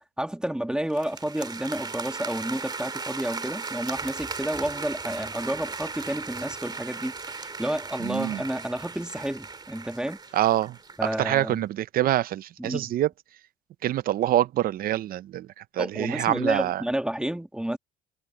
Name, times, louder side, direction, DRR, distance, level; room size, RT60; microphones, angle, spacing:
voice 1, 0.2-10.2 11.0-11.7 12.6-12.9 15.8-17.8, right 1 dB, 5° right, 1.8 m, -30 dB
sound 1, 0.9-11.2, right 4 dB, 25° right, 2.4 m, -37 dB
voice 2, 8.0-8.4 10.3-10.8 11.2-13.1 13.8-15.5 15.7-16.8, right 13 dB, 60° right, 0.6 m, -25 dB
cardioid pair, 110°, 17 cm